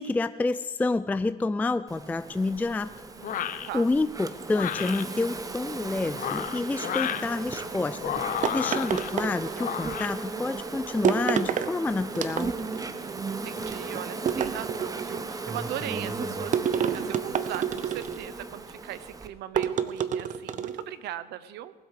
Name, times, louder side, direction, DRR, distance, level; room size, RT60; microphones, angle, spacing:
voice 1, 0.0-2.9 3.7-12.5, left 3 dB, 10° left, 13 dB, 0.3 m, -28 dB
Insect, 1.9-19.3, right 3 dB, 20° right, 1.0 m, -36 dB
voice 2, 3.1-3.9 12.8-21.7, right 12 dB, 80° right, 15 dB, 0.8 m, -39 dB
sound 1, 3.2-3.7 4.5-5.0 6.1-7.3 8.0-9.1 9.6-10.1, left 10 dB, 55° left, 0.8 m, -32 dB
sound 2, 8.4-9.8 11.0-11.7 12.1-12.8 14.3-15.2 16.5-18.3 19.5-20.8, right 8 dB, 50° right, 0.8 m, -28 dB
19.0 x 7.9 x 6.6 m, 1.4 s
cardioid pair, 110°, 17 cm